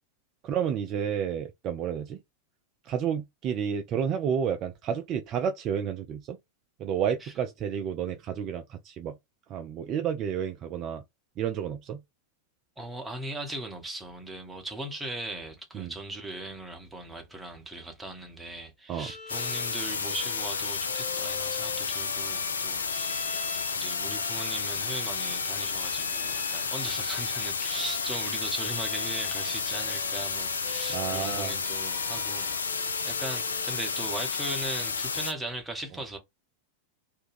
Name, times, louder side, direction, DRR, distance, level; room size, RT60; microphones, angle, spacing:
voice 1, 0.4-2.2 2.8-6.4 6.8-9.2 9.5-11.0 11.4-12.0 15.7-15.9 18.9-19.1 30.9-31.5, right 8 dB, 35° right, 0.3 m, -30 dB
voice 2, 12.8-23.2 23.7-36.2, right 2 dB, 5° right, 0.8 m, -38 dB
Bowed string instrument, 18.9-34.1, left 5 dB, 40° left, 0.7 m, -45 dB
sound 1, 19.3-35.3, left 5 dB, 70° left, 0.3 m, -31 dB
2.5 x 2.2 x 3.2 m
figure-of-eight pair, 90°, 0 cm